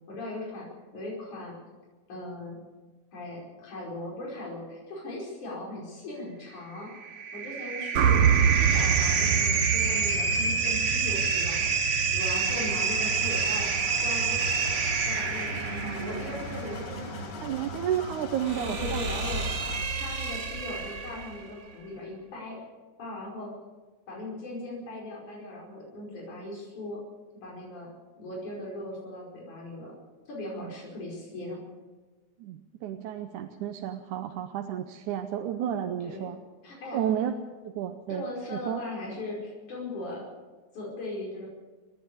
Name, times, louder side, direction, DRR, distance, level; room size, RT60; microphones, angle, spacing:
voice 1, 0.1-0.7 0.9-1.6 2.1-2.6 3.1-6.9 7.3-13.7 14.0-14.7 15.1-17.6 18.5-19.4 19.9-22.6 23.0-23.5 24.1-27.0 27.4-27.9 28.2-29.9 30.3-31.6 36.0-36.2 36.6-37.0 38.1-40.3 40.7-41.5, left 2 dB, 80° left, -4 dB, 6.5 m, -39 dB
sound 1, 6.8-21.4, right 5 dB, 50° right, 0.8 m, -28 dB
sound 2, 8.0-12.2, right 8 dB, 70° right, 2.0 m, -26 dB
sound 3, 12.5-19.8, left 4 dB, 60° left, 2.8 m, -42 dB
voice 2, 17.4-19.1 30.6-30.7 32.4-36.4 36.9-37.3 37.6-38.8, right 10 dB, 85° right, 6 dB, 2.4 m, -32 dB
30.0 x 10.5 x 8.6 m, 1.3 s
omnidirectional pair, 3.4 m